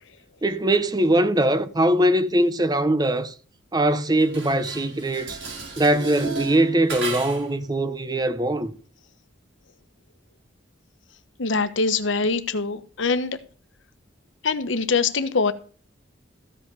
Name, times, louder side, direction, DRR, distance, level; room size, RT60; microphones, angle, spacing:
voice 1, 0.4-3.3 3.7-5.4 5.8-8.7, right 1 dB, 20° right, 0.7 m, -21 dB
Dishes pots and pans, 4.2-7.6, right 3 dB, 75° right, 5.6 m, -34 dB
voice 2, 11.4-13.4 14.4-15.5, left 4 dB, 70° left, 1.0 m, -23 dB
14.5 x 5.5 x 6.8 m
head